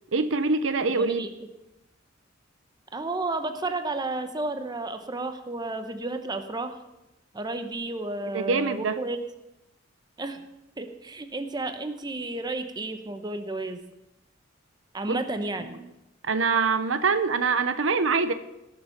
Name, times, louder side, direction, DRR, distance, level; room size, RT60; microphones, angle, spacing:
voice 1, 0.1-1.2 8.3-9.0 15.1-15.2 15.6-15.7 16.2-18.3, right 4 dB, 85° right, 11 dB, 0.8 m, -24 dB
voice 2, 1.0-1.3 2.9-6.7 7.3-9.2 10.2-10.4 10.8-13.8 14.9-15.8, right 2 dB, 20° right, 8 dB, 0.9 m, -32 dB
18.0 x 7.1 x 5.8 m, 0.93 s
head